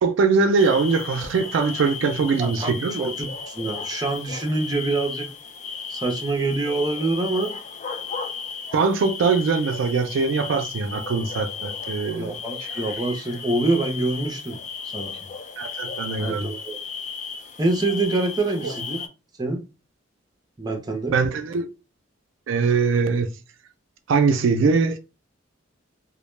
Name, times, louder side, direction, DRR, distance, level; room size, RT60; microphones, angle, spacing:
voice 1, 0.0-3.1 8.7-12.3 15.6-16.5 21.1-21.7 22.5-23.3 24.1-25.0, right 4 dB, 80° right, 0.3 m, -22 dB
sound 1, 0.6-19.1, left 5 dB, 40° left, 0.3 m, -35 dB
voice 2, 2.4-5.3 5.9-7.5 12.2-14.6 14.9-15.1 16.2-16.8 17.6-19.0 19.4-19.6 20.6-21.1, right 2 dB, 20° right, 0.5 m, -25 dB
2.1 x 2.1 x 3.0 m
head